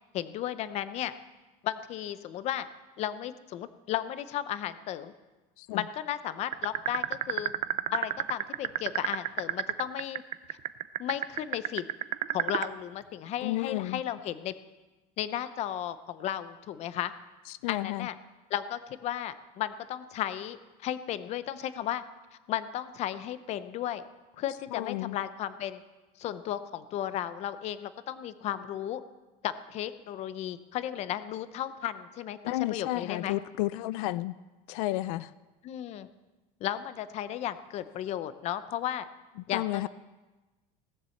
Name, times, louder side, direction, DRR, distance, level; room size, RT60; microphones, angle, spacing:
voice 1, 0.1-1.1 1.6-2.7 3.0-5.1 5.7-7.5 7.9-10.2 11.0-11.8 12.3-14.5 15.2-17.1 17.7-18.2 18.5-22.0 22.5-24.0 24.4-25.8 26.2-29.0 29.4-33.4 35.6-36.1 36.6-39.0 39.5-39.9, left 11 dB, 35° left, 13 dB, 0.6 m, -34 dB
sound 1, 6.5-12.7, right 15 dB, 40° right, 0.4 m, -28 dB
voice 2, 13.4-14.0 17.5-18.1 24.7-25.2 32.4-34.3 34.7-35.3 39.5-39.9, left 17 dB, 85° left, 17 dB, 0.4 m, -32 dB
17.5 x 7.4 x 7.1 m, 1.2 s
cardioid pair, 165°, 18 cm